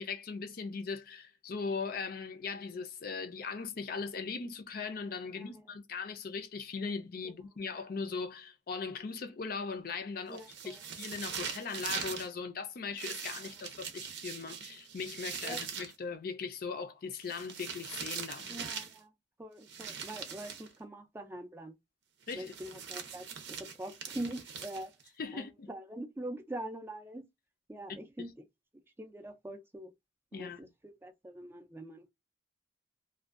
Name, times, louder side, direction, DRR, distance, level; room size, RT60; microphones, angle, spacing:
voice 1, 0.0-18.6 22.3-22.5 25.2-25.7 28.2-28.3 30.3-30.7, left 5 dB, 50° left, 0.4 m, -39 dB
voice 2, 5.3-5.6 10.3-10.8 15.4-15.6 18.5-19.1 19.4-21.7 22.3-24.9 25.3-27.3 27.7-28.3 29.0-29.9 30.3-32.1, right 1 dB, 10° right, 0.3 m, -43 dB
sound 1, 10.3-12.3 13.0-15.9 17.2-19.0 19.7-20.7 22.3-25.1, right 7 dB, 65° right, 0.6 m, -42 dB
2.5 x 2.2 x 2.4 m
head